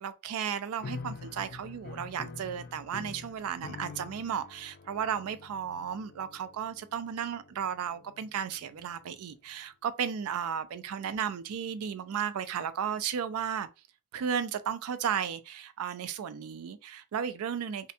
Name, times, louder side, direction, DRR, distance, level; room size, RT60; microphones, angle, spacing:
voice 1, 0.0-13.7 14.1-17.9, right 8 dB, 90° right, 0.4 m, -34 dB
sound 1, 0.8-9.1, left 4 dB, 45° left, 0.3 m, -46 dB
2.5 x 2.1 x 2.7 m
head